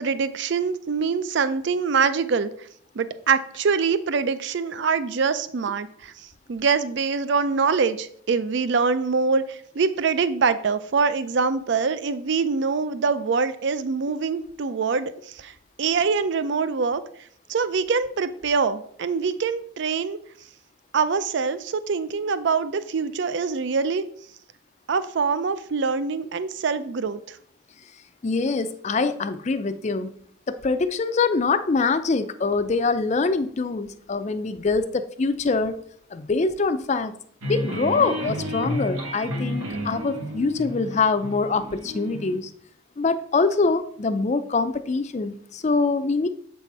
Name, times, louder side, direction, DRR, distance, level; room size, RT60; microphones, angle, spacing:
voice 1, 0.0-2.5 3.0-6.1 6.5-15.5 15.8-17.0 17.5-20.2 20.9-24.0 24.9-27.4, right 5 dB, 55° right, 13 dB, 0.4 m, -24 dB
voice 2, 28.2-30.1 30.5-35.8 36.1-37.1 37.5-42.5 43.0-46.3, left 4 dB, 35° left, 11 dB, 0.4 m, -24 dB
sound 1, 37.4-42.4, equal, 85° right, 1.5 m, -31 dB
7.5 x 4.1 x 4.7 m, 0.63 s
head